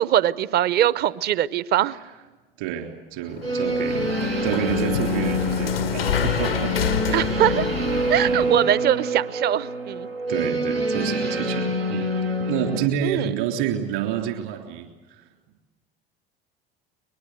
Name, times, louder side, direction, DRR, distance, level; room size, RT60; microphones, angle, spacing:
voice 1, 0.0-2.0 7.1-7.6 8.1-10.1 13.0-13.3, right 11 dB, 35° right, 19 dB, 0.8 m, -22 dB
voice 2, 2.6-4.2 4.4-6.8 7.0-7.5 8.3-8.6 10.3-12.1 12.4-15.2, right 10 dB, 60° right, 4 dB, 3.5 m, -29 dB
sound 1, 3.2-8.7, left 9 dB, 80° left, 0.7 m, -28 dB
sound 2, 3.4-12.9, equal, 85° right, 1.1 m, -26 dB
23.0 x 21.5 x 8.0 m, 1.2 s
figure-of-eight pair, 70°, 29 cm